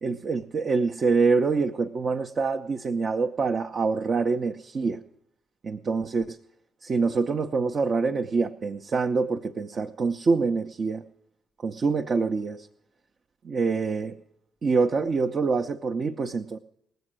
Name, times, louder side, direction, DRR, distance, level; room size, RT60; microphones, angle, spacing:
voice 1, 0.0-5.0 5.6-6.4 6.8-11.0 11.6-12.7 13.4-14.2 14.6-16.6, right 4 dB, 45° right, 4 dB, 0.5 m, -25 dB
18.5 x 7.9 x 6.1 m, 0.77 s
hypercardioid pair, 45°, 0 cm